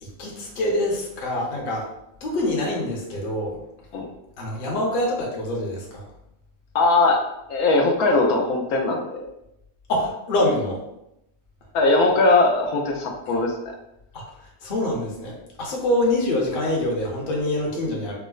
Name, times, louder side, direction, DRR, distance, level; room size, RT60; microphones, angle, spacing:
voice 1, 0.0-1.9 2.2-3.6 4.4-6.0 9.9-10.8 14.1-18.1, left 1 dB, 45° left, -2 dB, 0.8 m, -25 dB
voice 2, 6.7-7.2 7.5-9.3 11.7-13.5, left 2 dB, 80° left, 1 dB, 1.0 m, -20 dB
4.6 x 2.0 x 2.3 m, 0.83 s
omnidirectional pair, 1.6 m